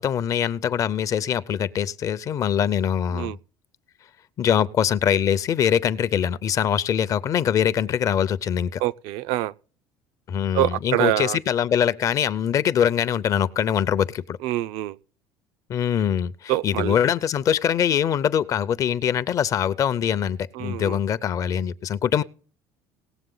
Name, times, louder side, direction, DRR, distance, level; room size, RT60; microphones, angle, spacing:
voice 1, 0.0-3.3 4.4-8.8 10.3-14.4 15.7-22.2, left 8 dB, 40° left, 0.6 m, -23 dB
voice 2, 8.8-9.5 10.5-11.4 14.4-15.0 16.5-16.9 20.6-21.0, right 15 dB, 80° right, 0.5 m, -25 dB
18.5 x 7.5 x 3.9 m
cardioid pair, 145°, 9 cm